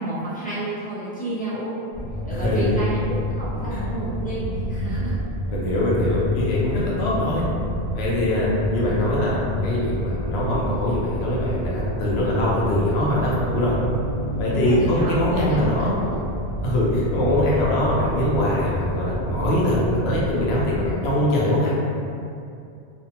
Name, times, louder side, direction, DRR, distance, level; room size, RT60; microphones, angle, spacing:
voice 1, 0.0-1.8 2.3-5.1 8.2-8.5 14.5-15.6 16.0-16.2, right 1 dB, 10° left, -12 dB, 0.6 m, -30 dB
sound 1, 1.9-20.9, equal, 60° right, 0.6 m, -29 dB
voice 2, 2.3-2.7 3.7-3.8 5.5-7.4 7.9-13.8 14.4-16.0 16.6-21.8, left 1 dB, 80° left, -5 dB, 0.9 m, -22 dB
2.5 x 2.2 x 2.8 m, 2.5 s
omnidirectional pair, 1.1 m